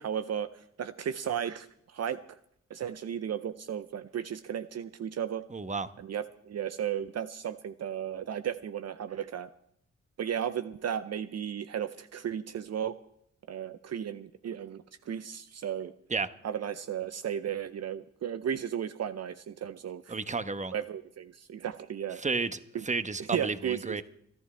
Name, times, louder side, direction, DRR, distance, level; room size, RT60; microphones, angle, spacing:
voice 1, 0.0-2.2 2.7-5.4 6.0-9.5 10.2-13.0 13.5-15.9 16.4-20.2 20.7-22.2 22.7-22.8 23.3-24.0, right 9 dB, 55° right, 0.7 m, -35 dB
voice 2, 5.5-5.9 16.1-16.3 20.1-20.7 22.2-22.6 22.8-24.0, right 4 dB, 25° right, 1.1 m, -32 dB
26.0 x 11.5 x 3.3 m
supercardioid pair, 40°, 31 cm